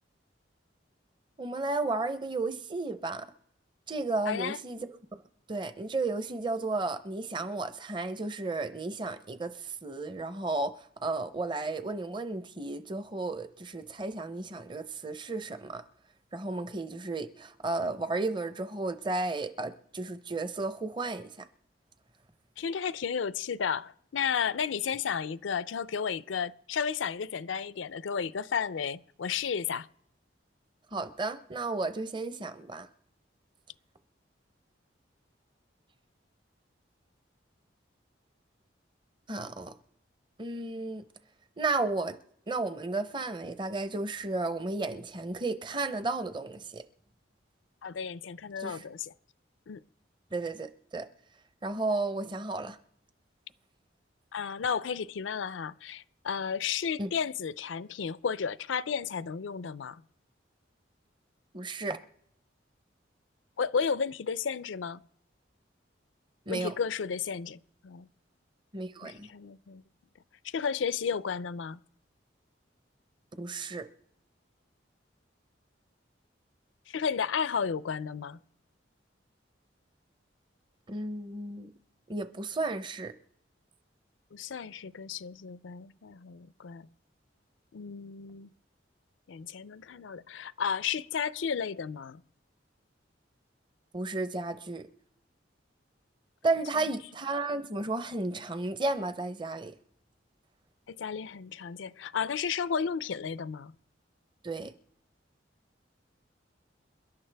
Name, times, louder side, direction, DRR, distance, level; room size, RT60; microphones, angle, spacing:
voice 1, 1.4-3.3 3.9-5.2 5.5-15.8 16.3-21.5 30.9-32.9 39.3-39.8 40.4-41.0 41.6-42.2 42.5-46.8 48.6-48.8 50.3-51.1 51.6-52.8 57.0-57.1 61.5-62.0 66.5-66.7 68.7-69.3 73.3-73.9 80.9-81.7 82.1-83.1 93.9-94.9 96.4-99.7 104.4-104.7, right 3 dB, 25° right, 0.7 m, -33 dB
voice 2, 4.3-4.6 22.6-29.9 47.8-49.1 49.7-49.8 54.3-60.0 63.6-65.0 66.5-68.1 69.0-69.8 70.4-71.8 76.9-78.4 84.3-86.9 87.7-88.5 89.3-92.2 100.9-103.7, left 6 dB, 85° left, 0.5 m, -33 dB
28.0 x 11.5 x 3.4 m
head